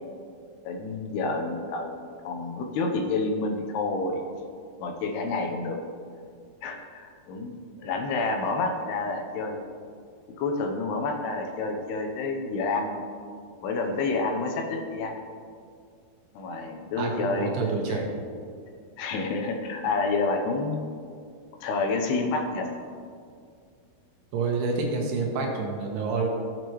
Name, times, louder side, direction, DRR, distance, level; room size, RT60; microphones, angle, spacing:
voice 1, 0.6-2.0 2.2-4.2 4.8-5.8 6.6-9.6 10.4-13.0 13.6-15.2 16.3-18.0 19.0-20.9 21.6-22.7, left 3 dB, 80° left, 3 dB, 2.8 m, -29 dB
voice 2, 17.0-18.1 24.3-26.3, right 4 dB, 80° right, 0 dB, 3.3 m, -28 dB
15.5 x 6.5 x 3.1 m, 2.2 s
omnidirectional pair, 4.7 m